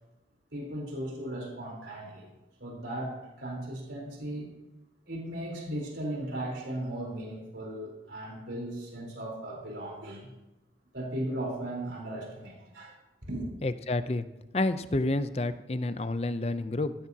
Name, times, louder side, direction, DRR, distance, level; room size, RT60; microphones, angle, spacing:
voice 1, 0.5-2.3 2.6-4.5 5.1-10.3 10.9-13.0 13.3-13.5, right 1 dB, 85° right, -1 dB, 4.0 m, -37 dB
voice 2, 13.6-14.2 14.5-16.9, left 2 dB, 35° left, 12 dB, 0.5 m, -29 dB
15.0 x 13.5 x 2.8 m, 0.99 s
head